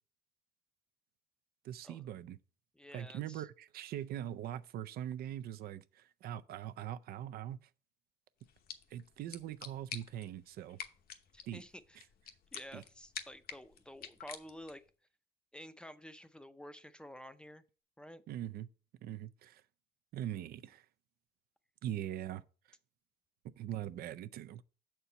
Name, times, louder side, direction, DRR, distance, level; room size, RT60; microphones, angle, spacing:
voice 1, 1.6-2.4 2.9-7.6 8.9-10.8 11.5-11.6 12.7-12.8 18.3-18.7 19.0-19.6 20.1-20.9 21.8-22.4 23.4-24.6, right 11 dB, 65° right, 0.5 m, -42 dB
voice 2, 2.7-3.5 11.3-12.1 12.5-14.8 15.5-17.6 18.0-18.2, equal, 5° left, 0.5 m, -51 dB
sound 1, 8.4-14.9, left 8 dB, 60° left, 1.0 m, -50 dB
6.8 x 4.4 x 5.4 m
cardioid pair, 110°, 17 cm